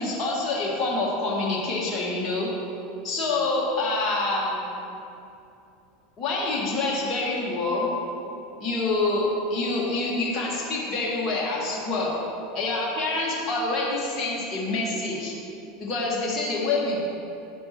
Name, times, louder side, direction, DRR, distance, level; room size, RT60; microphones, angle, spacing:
voice 1, 0.0-2.5 3.0-4.6 6.2-7.9 8.6-12.1 12.5-15.3 15.8-17.0, left 2 dB, 30° left, -4 dB, 1.7 m, -26 dB
9.7 x 9.4 x 3.0 m, 2.7 s
figure-of-eight pair, 80°, 0 cm